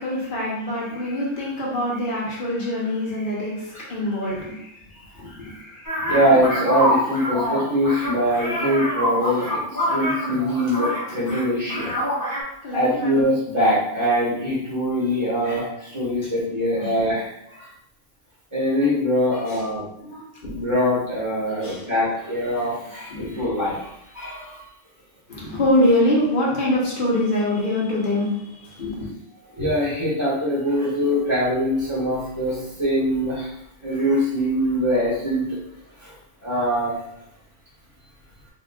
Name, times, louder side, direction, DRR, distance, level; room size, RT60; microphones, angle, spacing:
voice 1, 0.0-6.0 12.6-13.3 15.0-15.1 16.2-16.3 16.8-16.9 19.3-19.6 20.0-20.6 21.4-21.8 23.1-23.4 25.3-29.1, left 1 dB, 50° left, -4 dB, 1.1 m, -25 dB
sound 1, 5.8-11.4 11.7-12.4, equal, 15° left, 1.1 m, -25 dB
voice 2, 6.1-12.0 12.7-17.7 18.5-19.8 20.4-24.6 29.5-33.5 33.8-35.6 36.0-36.1 36.4-36.9, equal, 25° right, -8 dB, 1.1 m, -23 dB
3.6 x 3.4 x 2.4 m, 0.77 s
omnidirectional pair, 1.2 m